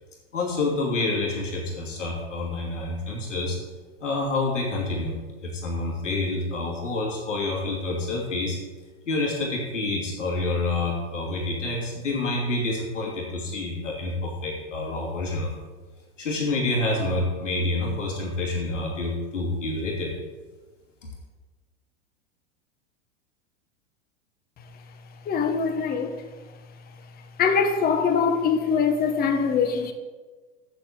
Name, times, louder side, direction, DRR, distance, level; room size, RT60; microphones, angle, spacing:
voice 1, 0.3-3.6 4.0-8.6 9.1-15.5 16.2-20.1, left 2 dB, 90° left, 2.7 m, -28 dB
voice 2, 25.2-26.1 27.4-29.9, left 6 dB, 25° left, 1.0 m, -23 dB
7.8 x 6.8 x 7.9 m
hypercardioid pair, 110°, 36 cm